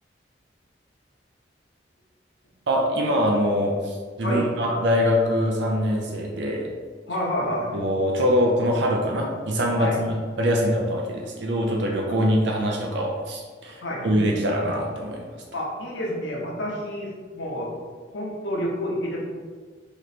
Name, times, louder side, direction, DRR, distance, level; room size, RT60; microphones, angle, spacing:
voice 1, 2.7-6.7 7.7-15.3, equal, 70° right, 0 dB, 0.6 m, -23 dB
voice 2, 7.1-7.7 9.8-10.0 13.8-14.1 15.5-17.7 18.1-19.2, equal, 90° left, -2 dB, 0.9 m, -29 dB
3.2 x 3.1 x 4.1 m, 1.5 s
head